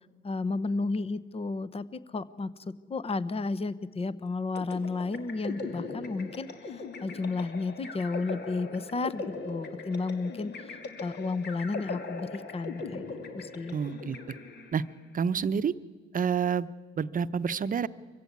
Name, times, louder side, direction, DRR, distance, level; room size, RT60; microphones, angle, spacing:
voice 1, 0.2-13.1 13.3-13.8, left 3 dB, 30° left, 16 dB, 0.9 m, -33 dB
sound 1, 4.5-15.0, left 3 dB, 60° left, 2.6 m, -40 dB
voice 2, 13.7-14.2 14.7-14.8 15.1-15.7 16.1-16.7 17.0-17.9, right 6 dB, 45° right, 14 dB, 0.8 m, -28 dB
24.0 x 15.5 x 9.5 m, 1.5 s
cardioid pair, 90°, 20 cm